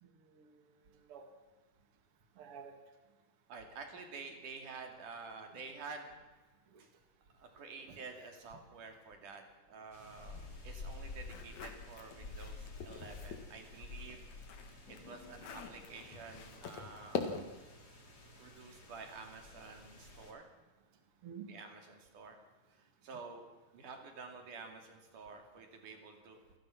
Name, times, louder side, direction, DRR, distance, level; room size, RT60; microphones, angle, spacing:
voice 1, 0.0-1.3 2.4-2.8 6.7-6.8 7.9-8.0 10.3-10.5 21.2-21.5, right 7 dB, 45° right, 5 dB, 2.7 m, -52 dB
voice 2, 3.5-6.1 6.8-6.9 7.4-9.4 9.7-14.2 14.9-17.5 18.4-20.5 21.5-22.4 22.7-23.4 23.7-26.4, right 4 dB, 70° right, 4 dB, 4.1 m, -50 dB
sound 1, 9.9-20.3, left 3 dB, 30° left, 3.3 m, -51 dB
sound 2, 11.2-13.5 13.9-17.7, left 6 dB, 60° left, 2.9 m, -44 dB
28.5 x 15.5 x 6.0 m, 1.3 s
omnidirectional pair, 3.8 m